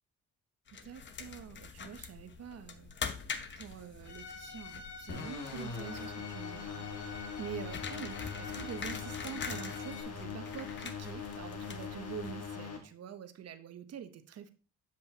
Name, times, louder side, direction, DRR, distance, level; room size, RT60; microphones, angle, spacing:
sound 1, 0.7-12.7, left 6 dB, 40° left, 0.9 m, -45 dB
voice 1, 0.8-2.9 3.2-14.5, right 8 dB, 55° right, 10 dB, 0.9 m, -46 dB
Bowed string instrument, 4.0-10.0, left 5 dB, 70° left, 1.1 m, -48 dB
sound 2, 5.1-12.8, left 6 dB, 55° left, 1.8 m, -42 dB
7.6 x 7.3 x 2.9 m, 0.36 s
cardioid pair, 90°, 30 cm